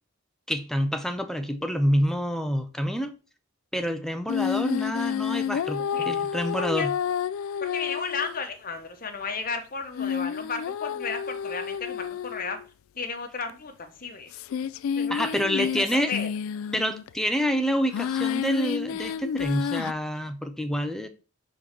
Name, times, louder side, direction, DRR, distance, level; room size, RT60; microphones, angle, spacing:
voice 1, 0.5-3.1 3.7-6.9 15.1-16.1 16.7-21.1, equal, ahead, 0.5 m, -27 dB
sound 1, 4.3-8.4 10.0-12.7 13.5-13.6 14.3-17.1 17.9-19.9, left 8 dB, 75° left, 0.3 m, -30 dB
voice 2, 7.6-12.6 13.0-14.3 15.0-15.3 15.5-16.3, left 4 dB, 40° left, 1.0 m, -34 dB
4.8 x 3.8 x 5.7 m
head